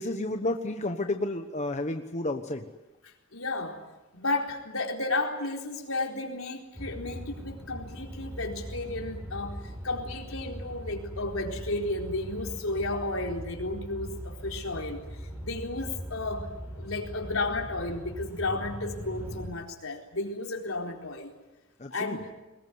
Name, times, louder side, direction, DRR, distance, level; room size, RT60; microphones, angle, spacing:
voice 1, 0.0-2.7 21.8-22.2, left 2 dB, 35° left, 6 dB, 1.2 m, -31 dB
voice 2, 3.0-3.8 4.1-16.5 16.8-21.3 21.9-22.3, left 2 dB, 75° left, 1 dB, 4.2 m, -33 dB
sound 1, 6.7-19.5, equal, 10° right, 5.1 m, -40 dB
23.0 x 20.5 x 9.6 m, 1.1 s
head